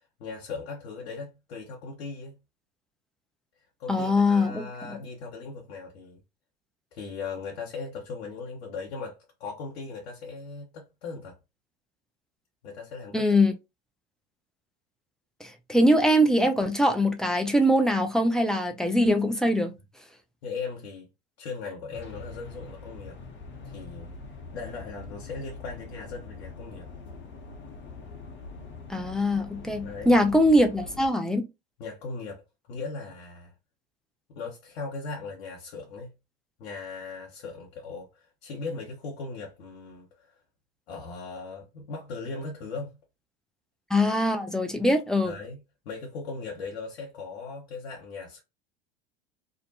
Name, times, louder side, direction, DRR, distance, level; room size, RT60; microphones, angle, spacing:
voice 1, 0.2-2.3 3.8-6.2 6.9-11.3 12.6-13.2 20.4-21.1 21.4-23.2 23.6-24.1 24.5-26.9 29.8-30.1 31.8-32.4 32.7-33.5 34.3-36.1 36.6-40.3 40.9-43.0 45.2-45.6 45.8-48.4, left 4 dB, 70° left, 1.0 m, -38 dB
voice 2, 3.9-5.0 13.1-13.5 15.4-19.8 28.9-31.4 43.9-45.4, left 1 dB, ahead, 0.4 m, -22 dB
sound 1, 21.9-31.1, left 4 dB, 35° left, 0.8 m, -43 dB
2.5 x 2.1 x 2.8 m
hypercardioid pair, 80°, 32 cm